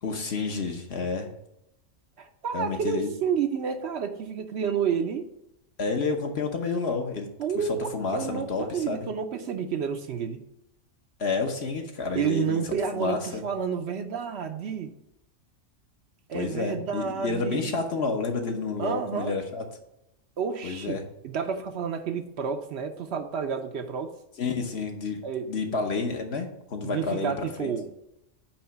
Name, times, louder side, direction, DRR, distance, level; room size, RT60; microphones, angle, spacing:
voice 1, 0.0-1.3 2.5-3.1 5.8-7.3 7.9-9.1 11.2-12.6 12.9-13.4 16.3-19.6 20.6-21.1 24.4-27.7, left 4 dB, 55° left, 3 dB, 1.2 m, -30 dB
voice 2, 2.2-5.3 7.4-10.4 12.1-14.9 16.3-17.8 18.8-19.3 20.4-24.1 25.2-25.5 26.8-27.9, right 7 dB, 65° right, 7 dB, 0.8 m, -30 dB
8.7 x 3.1 x 5.7 m, 0.86 s
omnidirectional pair, 1.3 m